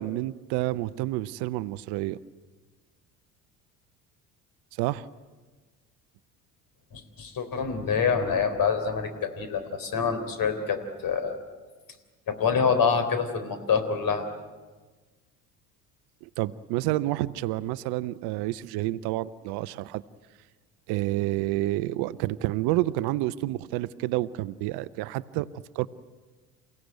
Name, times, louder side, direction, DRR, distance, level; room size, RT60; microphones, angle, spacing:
voice 1, 0.0-2.2 4.8-5.1 16.2-20.0 20.9-25.5 25.7-25.9, right 16 dB, 55° right, 16 dB, 0.8 m, -29 dB
voice 2, 6.9-11.4 12.3-14.3, left 6 dB, 45° left, 9 dB, 3.8 m, -26 dB
29.0 x 16.5 x 9.3 m, 1.3 s
figure-of-eight pair, 60°, 46 cm